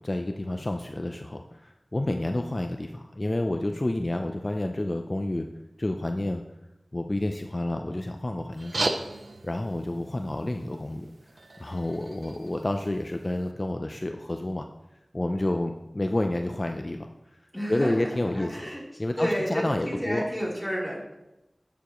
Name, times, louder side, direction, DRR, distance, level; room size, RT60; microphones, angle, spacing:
voice 1, 0.0-5.5 5.8-6.4 6.9-8.9 9.4-11.1 11.6-14.7 15.1-17.1 17.7-18.6 19.0-20.2, left 1 dB, 40° left, 5 dB, 0.5 m, -29 dB
sound 1, 8.5-13.5, right 2 dB, 85° right, 0.5 m, -36 dB
voice 2, 17.5-18.8 19.2-21.2, equal, 5° right, -5 dB, 3.5 m, -30 dB
11.5 x 7.1 x 3.1 m, 0.93 s
wide cardioid pair, 50°, 0 cm